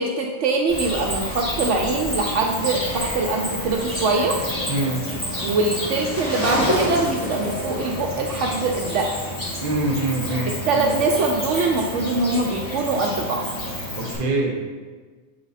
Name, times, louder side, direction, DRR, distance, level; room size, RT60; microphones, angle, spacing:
voice 1, 0.0-4.4 5.4-9.1 10.6-13.4, right 3 dB, 70° right, 1 dB, 0.9 m, -23 dB
Cricket, 0.7-14.1, left 1 dB, 30° left, 1.7 m, -28 dB
voice 2, 4.7-5.1 9.6-10.9 13.9-14.6, right 2 dB, 40° right, 0 dB, 0.9 m, -24 dB
7.9 x 3.4 x 4.1 m, 1.4 s
omnidirectional pair, 1.4 m